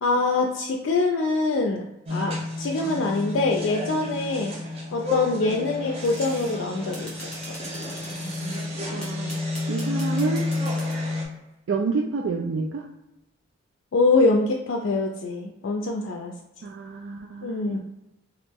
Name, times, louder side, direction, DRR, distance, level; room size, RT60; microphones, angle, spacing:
voice 1, 0.0-1.8 2.1-4.6 4.9-7.1 13.9-16.3 17.4-17.8, left 3 dB, 75° left, 1 dB, 0.4 m, -24 dB
sound 1, 2.1-11.3, left 2 dB, 30° right, 0.8 m, -31 dB
sound 2, 6.0-6.6 6.9-8.6 9.0-11.0, equal, 5° left, 0.9 m, -41 dB
voice 2, 8.9-9.4 9.7-10.5 11.7-12.8 16.6-17.8, right 4 dB, 70° right, 0 dB, 0.3 m, -29 dB
3.0 x 2.4 x 3.4 m, 0.94 s
head